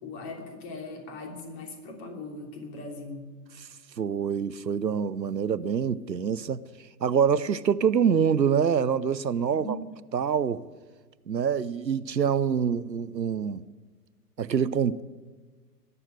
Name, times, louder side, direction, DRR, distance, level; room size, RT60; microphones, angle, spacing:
voice 1, 0.0-3.3 9.5-9.7, left 2 dB, 40° left, 3.1 m, -39 dB
voice 2, 4.0-6.6 7.0-9.8 10.1-10.7 11.3-13.6 14.4-15.0, right 7 dB, 90° right, 0.7 m, -25 dB
20.0 x 7.1 x 9.8 m
figure-of-eight pair, 105°, 50 cm